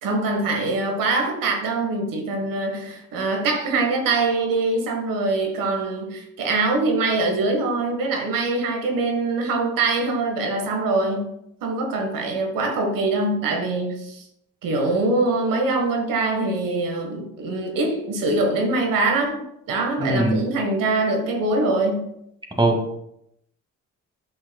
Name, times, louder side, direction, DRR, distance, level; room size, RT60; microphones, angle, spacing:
voice 1, 0.0-11.3 11.6-14.2 14.6-22.1, right 3 dB, 75° right, 3 dB, 1.5 m, -23 dB
voice 2, 20.0-20.3 22.6-23.0, right 1 dB, 15° right, 1 dB, 1.8 m, -21 dB
7.8 x 5.5 x 2.3 m, 0.78 s
supercardioid pair, 75°, 34 cm